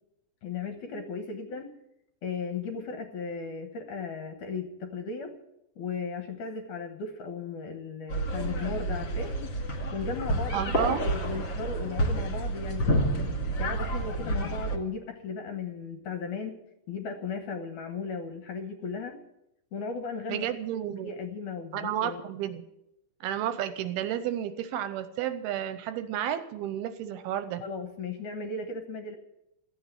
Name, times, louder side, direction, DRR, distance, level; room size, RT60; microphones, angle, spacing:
voice 1, 0.4-1.7 2.2-5.3 5.8-9.3 9.9-13.1 13.6-16.6 16.9-19.2 19.7-20.5 21.0-22.2 27.6-29.2, left 4 dB, 65° left, 6 dB, 2.1 m, -36 dB
sound 1, 8.1-14.8, right 1 dB, 35° left, 2.1 m, -29 dB
voice 2, 10.5-11.1 20.3-21.1 21.7-22.6 23.2-27.6, right 10 dB, 80° right, 11 dB, 2.5 m, -31 dB
15.5 x 8.3 x 9.5 m, 0.85 s
omnidirectional pair, 4.8 m